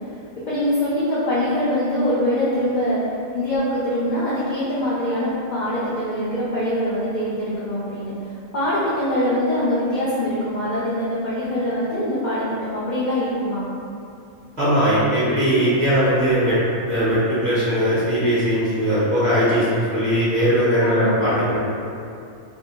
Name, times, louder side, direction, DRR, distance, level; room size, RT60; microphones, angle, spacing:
voice 1, 0.4-3.0 3.3-8.1 8.5-13.7 20.8-21.1, left 1 dB, 75° left, -9 dB, 0.4 m, -23 dB
voice 2, 14.6-16.6 16.9-21.6, equal, 45° right, -11 dB, 0.7 m, -19 dB
2.5 x 2.1 x 2.8 m, 2.5 s
omnidirectional pair, 1.4 m